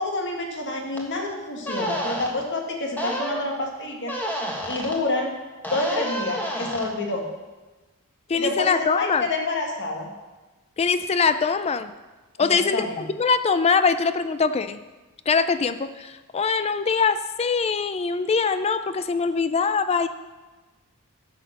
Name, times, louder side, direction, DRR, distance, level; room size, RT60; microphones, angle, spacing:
voice 1, 0.0-4.1 4.7-5.3 5.7-7.3 8.3-10.1 12.4-13.0, left 2 dB, 55° left, 2 dB, 1.8 m, -28 dB
sound 1, 1.0-1.1 1.6-2.3 3.0-3.4 4.1-5.0 5.6-6.9, equal, 10° left, 1.5 m, -29 dB
voice 2, 8.3-9.2 10.8-11.9 12.4-14.8 15.3-20.1, left 5 dB, 30° left, 12 dB, 0.4 m, -23 dB
10.5 x 6.6 x 6.5 m, 1.2 s
head